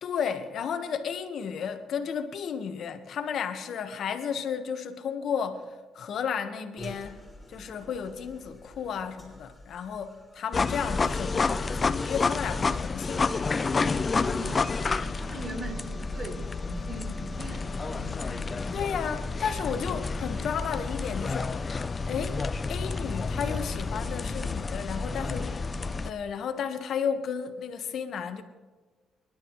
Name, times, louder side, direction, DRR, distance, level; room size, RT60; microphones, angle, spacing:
voice 1, 0.0-7.2 7.5-13.4 18.7-21.7 22.1-22.4 22.7-25.7 26.0-28.4, left 7 dB, 65° left, 1.4 m, -33 dB
sound 1, 6.8-11.9, equal, 10° left, 5.5 m, -49 dB
sound 2, 10.5-26.1, left 4 dB, 35° left, 0.6 m, -30 dB
voice 2, 14.1-19.2, right 1 dB, 40° right, 4.7 m, -42 dB
23.5 x 11.5 x 3.2 m
cardioid pair, 90°, 0 cm